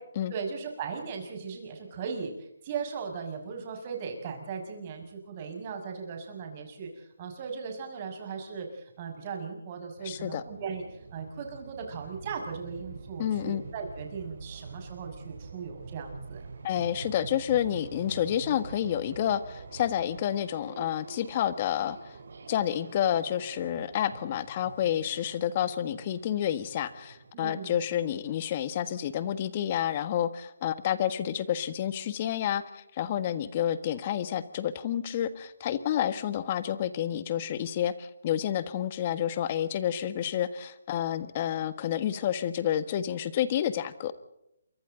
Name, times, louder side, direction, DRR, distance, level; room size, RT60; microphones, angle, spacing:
voice 1, 0.3-16.4 27.3-27.8, right 5 dB, 30° right, 3 dB, 6.1 m, -38 dB
voice 2, 10.0-10.4 13.2-13.6 16.6-22.2 22.5-44.1, left 10 dB, 35° left, 13 dB, 1.5 m, -29 dB
sound 1, 10.0-27.3, right 4 dB, 65° right, 3.7 m, -46 dB
28.5 x 24.0 x 3.9 m, 0.83 s
hypercardioid pair, 160°, 0 cm